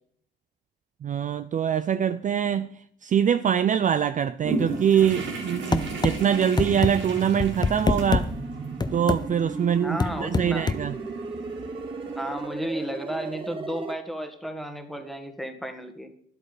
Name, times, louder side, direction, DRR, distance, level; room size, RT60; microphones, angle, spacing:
voice 1, 1.0-2.7 3.0-8.3 8.9-11.0, right 8 dB, 40° right, 0.4 m, -24 dB
sound 1, 4.4-12.5, right 3 dB, 70° right, 2.1 m, -36 dB
sound 2, 5.7-6.2 6.6-6.9 7.4-8.3 8.8-9.2 10.0-10.8, left 4 dB, 20° left, 0.6 m, -23 dB
sound 3, 6.5-13.9, right 3 dB, 25° right, 1.0 m, -35 dB
voice 2, 9.8-10.7 12.1-16.1, equal, ahead, 1.5 m, -33 dB
10.5 x 8.1 x 5.0 m
cardioid pair, 90°, 20 cm